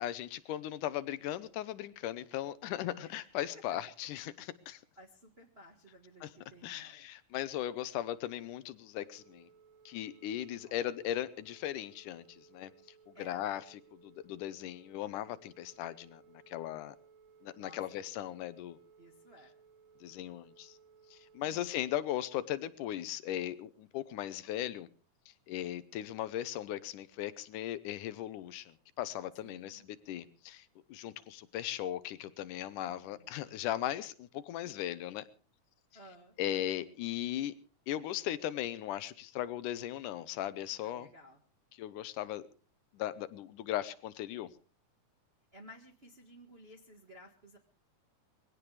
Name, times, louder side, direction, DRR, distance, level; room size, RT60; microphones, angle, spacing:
voice 1, 0.0-4.8 6.2-6.3 6.6-9.5 9.9-12.7 13.1-17.0 17.4-18.8 20.0-20.7 21.1-24.9 25.5-35.2 36.4-37.5 37.9-41.1 41.8-42.4 42.9-44.5, left 12 dB, 85° left, 2.4 m, -38 dB
voice 2, 3.0-3.6 4.9-7.1 10.6-10.9 13.1-13.5 17.6-18.0 19.0-19.5 21.4-21.9 29.4-29.8 32.9-33.4 35.9-36.3 40.8-41.4 45.5-47.6, equal, 35° right, 1.0 m, -56 dB
Telephone, 9.0-22.2, right 6 dB, 65° right, 2.3 m, -62 dB
21.5 x 17.0 x 3.3 m
omnidirectional pair, 3.5 m